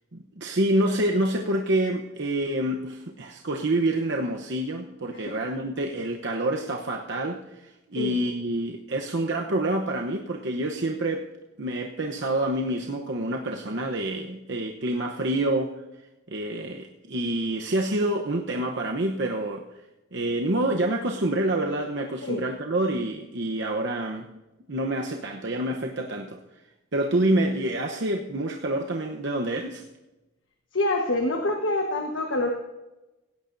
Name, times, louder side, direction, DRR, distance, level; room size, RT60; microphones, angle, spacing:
voice 1, 0.1-11.3 11.6-15.8 16.3-19.6 20.1-24.4 24.7-26.4 26.9-29.8, right 1 dB, 60° right, 2 dB, 0.9 m, -27 dB
voice 2, 30.7-32.5, left 2 dB, 70° left, 3 dB, 1.4 m, -26 dB
17.0 x 17.0 x 2.7 m, 1.0 s
head